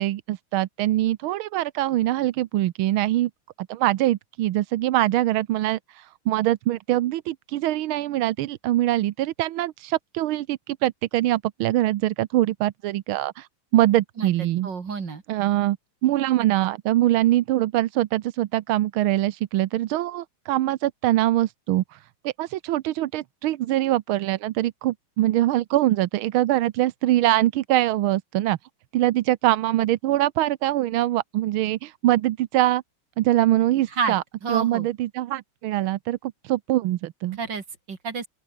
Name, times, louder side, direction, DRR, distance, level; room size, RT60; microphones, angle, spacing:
voice 1, 0.0-3.3 3.7-13.5 13.7-14.7 15.3-15.8 16.0-28.6 28.9-32.8 33.2-34.2 34.5-37.4, right 15 dB, 90° right, 1.6 m, -23 dB
voice 2, 14.6-15.2 33.9-34.2 34.4-34.9 37.4-38.3, right 5 dB, 60° right, 3.3 m, -29 dB
open air
omnidirectional pair, 2.3 m